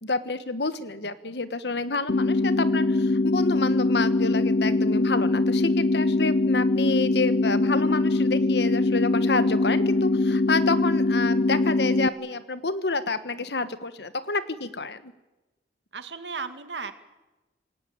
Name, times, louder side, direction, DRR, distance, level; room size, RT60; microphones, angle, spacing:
voice 1, 0.0-15.1, left 3 dB, 75° left, 12 dB, 1.4 m, -29 dB
sound 1, 2.1-12.1, left 2 dB, 60° left, 0.8 m, -22 dB
voice 2, 15.9-16.9, right 4 dB, 85° right, 9 dB, 2.2 m, -35 dB
27.5 x 17.5 x 8.8 m, 1.1 s
head